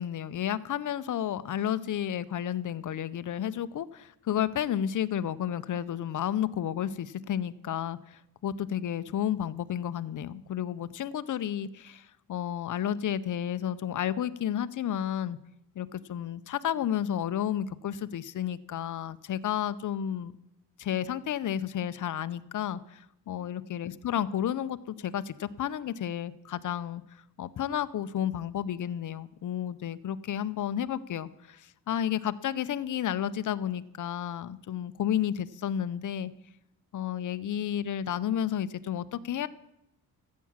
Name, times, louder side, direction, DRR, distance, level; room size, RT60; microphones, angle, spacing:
voice 1, 0.0-15.4 15.8-20.3 20.8-27.0 27.4-36.3 36.9-39.5, left 10 dB, 55° left, 14 dB, 0.7 m, -32 dB
14.0 x 8.4 x 7.3 m, 0.83 s
wide cardioid pair, 135°, 37 cm